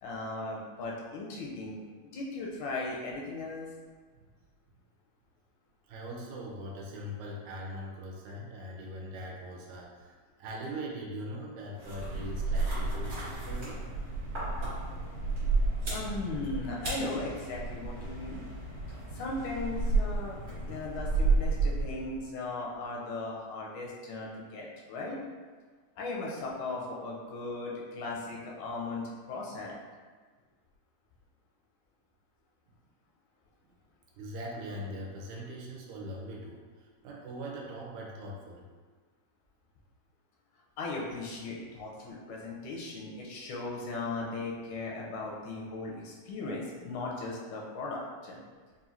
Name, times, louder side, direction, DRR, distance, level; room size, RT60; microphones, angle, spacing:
voice 1, 0.0-3.7 15.9-18.4 19.1-25.2 26.0-29.8 40.8-48.4, left 2 dB, 80° left, -3 dB, 2.1 m, -37 dB
voice 2, 5.9-10.1 10.4-13.8 34.2-38.6, equal, 80° right, -2 dB, 2.0 m, -41 dB
sound 1, 11.8-22.2, right 3 dB, 45° right, 1.1 m, -32 dB
5.4 x 2.5 x 2.7 m, 1.4 s
omnidirectional pair, 3.5 m